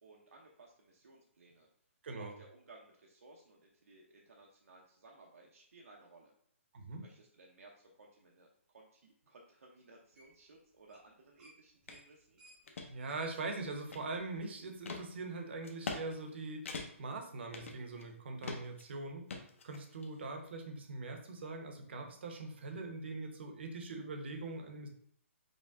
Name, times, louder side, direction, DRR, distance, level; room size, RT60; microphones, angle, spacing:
voice 1, 0.0-1.7 2.2-6.3 7.0-12.4, right 2 dB, 85° right, -1 dB, 0.9 m, -59 dB
sound 1, 10.2-10.5 10.8-11.1 11.4-14.8 15.1-15.2 16.1-16.2, right 1 dB, 10° right, 0.7 m, -63 dB
sound 2, 11.9-12.0 12.5-12.9 13.4-14.3 14.9-15.0 15.6-16.0 16.3-16.4 16.7-17.1 17.5-18.1 18.4-18.8 19.3-20.1, left 4 dB, 65° left, 0.8 m, -43 dB
voice 2, 12.9-19.3 19.6-24.9, right 3 dB, 50° right, 4 dB, 0.8 m, -42 dB
5.1 x 2.1 x 3.5 m, 0.64 s
hypercardioid pair, 170°, 7 cm